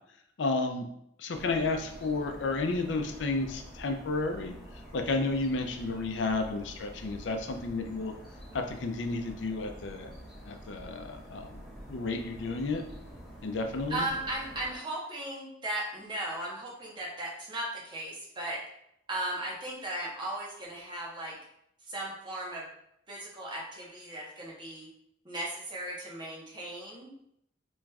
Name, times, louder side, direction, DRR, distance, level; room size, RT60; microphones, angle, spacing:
voice 1, 0.4-0.9 1.2-8.1 8.5-10.1 10.4-11.6 11.9-12.8 13.4-14.1, left 3 dB, 80° left, 5 dB, 0.5 m, -32 dB
sound 1, 1.3-14.7, equal, ahead, 1.2 m, -47 dB
voice 2, 13.9-18.6 19.1-21.4 21.9-22.7 23.1-24.9 25.2-27.1, right 1 dB, 25° right, -3 dB, 0.9 m, -36 dB
4.7 x 3.0 x 2.3 m, 0.75 s
head